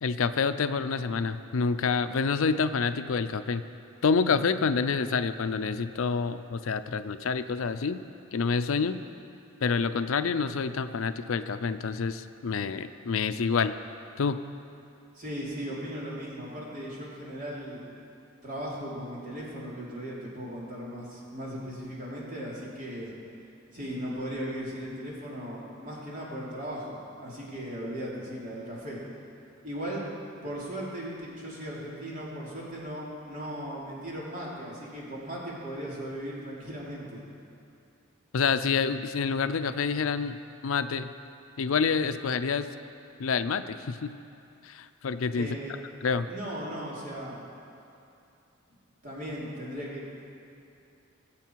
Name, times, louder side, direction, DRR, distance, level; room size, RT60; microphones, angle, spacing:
voice 1, 0.0-3.6 4.0-8.0 8.3-9.0 9.6-13.7 14.2-14.4 38.3-40.4 40.6-41.1 41.6-42.7 43.2-44.1 44.6-45.5 46.0-46.3, left 5 dB, 75° left, 11 dB, 0.5 m, -27 dB
voice 2, 15.1-17.8 18.4-23.1 23.7-29.0 29.6-30.1 30.4-37.2 45.3-45.7 46.3-47.4 49.0-50.3, equal, 40° right, -5 dB, 3.0 m, -37 dB
20.5 x 7.7 x 4.6 m, 2.7 s
head